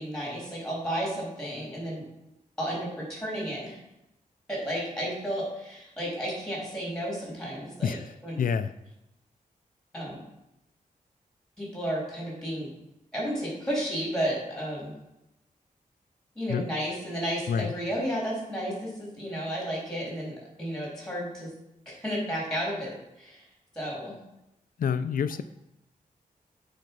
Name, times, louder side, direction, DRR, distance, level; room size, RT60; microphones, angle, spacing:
voice 1, 0.0-2.0 2.6-3.8 4.5-8.0 8.2-8.4 9.9-10.2 11.6-12.7 13.1-15.0 16.4-21.5 21.9-23.5 23.7-24.2, equal, 5° left, -4 dB, 3.4 m, -32 dB
voice 2, 8.4-8.7 16.5-16.7 17.5-17.7 24.8-25.4, left 7 dB, 75° left, 12 dB, 0.5 m, -27 dB
9.2 x 4.4 x 5.3 m, 0.90 s
wide cardioid pair, 155°, 15 cm